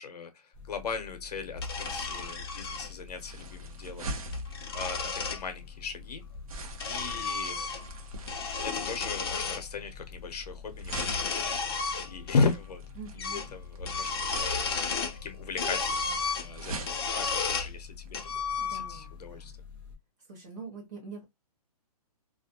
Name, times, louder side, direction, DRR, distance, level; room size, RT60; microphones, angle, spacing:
voice 1, 0.0-4.1 4.7-6.2 6.8-7.7 8.6-11.6 12.0-12.8 13.1-18.3 18.7-19.5, left 4 dB, 75° left, 0.8 m, -36 dB
sound 1, 0.5-19.9, left 6 dB, 10° left, 0.9 m, -48 dB
sound 2, 1.6-2.9 4.1-5.4 6.3-8.0 8.2-9.6 10.8-12.5 12.7-12.8 13.2-13.5 13.8-15.2 15.6-17.7 18.1-19.1, left 4 dB, 40° left, 0.4 m, -33 dB
sound 3, 1.7-18.6, right 2 dB, 60° right, 0.8 m, -45 dB
voice 2, 13.0-13.4 18.6-19.5 20.3-21.2, right 4 dB, 25° right, 0.8 m, -44 dB
2.4 x 2.1 x 2.8 m
hypercardioid pair, 170°, 20 cm